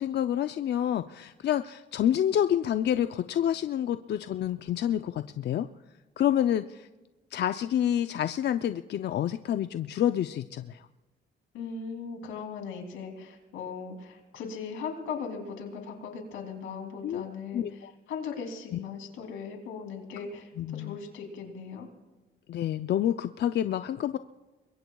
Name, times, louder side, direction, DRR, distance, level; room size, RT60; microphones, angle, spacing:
voice 1, 0.0-5.7 6.2-6.9 7.3-10.9 17.0-17.2 17.5-17.9 18.7-18.8 20.6-21.0 22.5-24.2, left 10 dB, 60° left, 10 dB, 0.5 m, -28 dB
voice 2, 11.5-17.6 18.1-21.9, left 5 dB, 90° left, 3 dB, 3.0 m, -38 dB
27.5 x 22.0 x 2.3 m, 1.1 s
cardioid pair, 90°, 20 cm